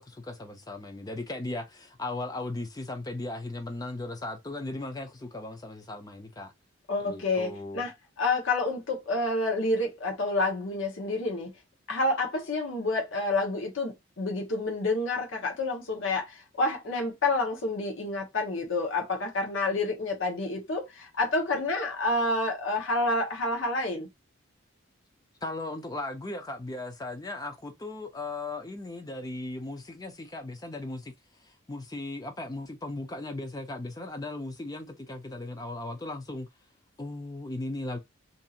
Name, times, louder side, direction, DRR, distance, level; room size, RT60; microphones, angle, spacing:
voice 1, 0.0-6.5 7.0-7.8 25.4-31.1 31.4-36.5 37.0-38.0, left 2 dB, 20° left, 0.4 m, -37 dB
voice 2, 6.9-7.9 8.2-11.5 11.9-24.1, left 2 dB, 70° left, 0.9 m, -29 dB
2.7 x 2.4 x 2.7 m
head